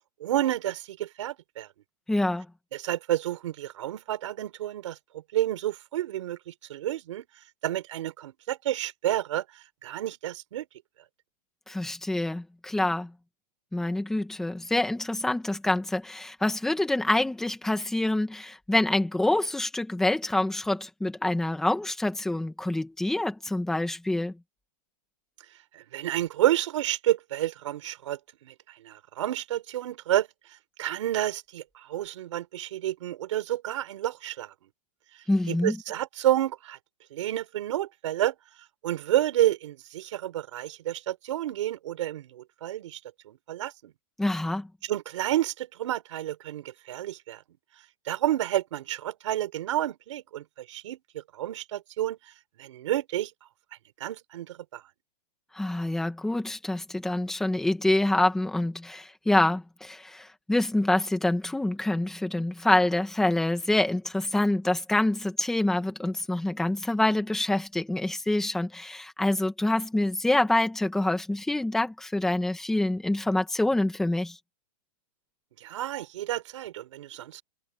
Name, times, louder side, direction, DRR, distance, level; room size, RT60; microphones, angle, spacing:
voice 1, 0.2-1.7 2.7-7.3 7.6-9.4 9.8-10.6 25.7-28.5 28.8-30.3 30.8-34.5 35.5-36.8 37.1-38.3 38.8-43.0 43.3-43.9 44.8-47.4 48.1-51.0 51.3-52.2 52.6-53.3 54.0-54.8 75.6-77.4, right 13 dB, 50° right, 4.2 m, -30 dB
voice 2, 2.1-2.5 11.7-13.1 13.7-24.4 35.3-35.8 44.2-44.7 55.5-74.4, left 1 dB, ahead, 1.9 m, -26 dB
hypercardioid pair, 180°, 21 cm